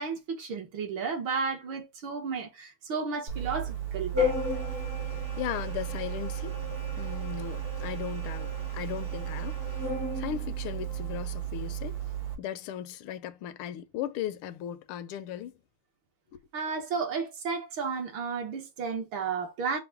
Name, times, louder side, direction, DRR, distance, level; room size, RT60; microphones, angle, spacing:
voice 1, 0.0-4.3 16.5-19.8, right 5 dB, 65° right, 1.8 m, -33 dB
Organ, 3.3-12.3, right 3 dB, 85° right, 3.1 m, -33 dB
voice 2, 5.4-6.6 7.0-9.6 10.1-12.0 12.4-15.5 16.3-16.4, left 10 dB, 80° left, 1.4 m, -37 dB
5.8 x 2.1 x 4.4 m
omnidirectional pair, 2.4 m